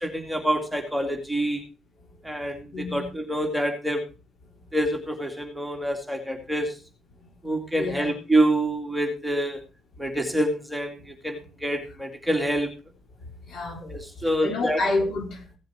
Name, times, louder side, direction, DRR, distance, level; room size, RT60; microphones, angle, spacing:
voice 1, 0.0-1.6 2.2-2.6 2.9-4.0 4.7-6.7 7.4-9.6 10.0-10.9 11.2-12.7 13.8-14.8, right 1 dB, 5° right, 2.3 m, -26 dB
voice 2, 2.7-3.1 7.7-8.1 13.5-13.8 14.2-15.6, left 2 dB, 60° left, 4.2 m, -29 dB
16.5 x 7.7 x 4.3 m
cardioid pair, 115°, 0 cm